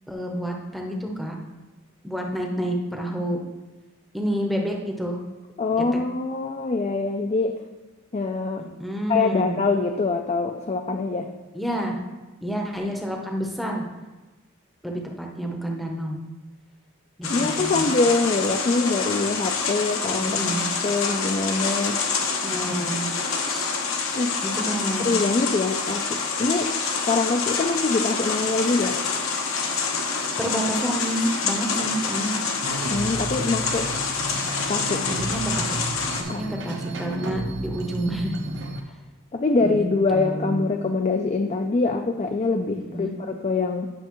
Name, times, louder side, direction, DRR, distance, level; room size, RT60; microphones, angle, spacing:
voice 1, 0.1-1.4 2.0-3.4 4.1-5.2 5.7-5.8 8.8-9.7 11.5-12.0 12.4-13.8 14.8-16.2 17.2-17.9 20.2-20.7 22.3-23.0 23.4-23.7 24.4-25.0 30.4-32.5 35.1-35.7 36.2-38.6 39.6-39.8 40.1-40.7 42.8-43.1, equal, ahead, 0 dB, 0.7 m, -29 dB
voice 2, 5.6-7.5 8.1-8.6 9.1-11.3 17.3-20.4 20.8-22.0 24.1-24.4 25.0-26.7 27.1-29.0 32.9-33.9 34.7-35.1 36.3-36.4 39.3-43.9, left 3 dB, 30° left, 5 dB, 0.4 m, -24 dB
sound 1, 17.2-36.2, left 5 dB, 85° left, 1.0 m, -27 dB
sound 2, 32.6-38.8, right 2 dB, 55° right, 0.9 m, -33 dB
10.5 x 6.5 x 3.0 m, 1.2 s
head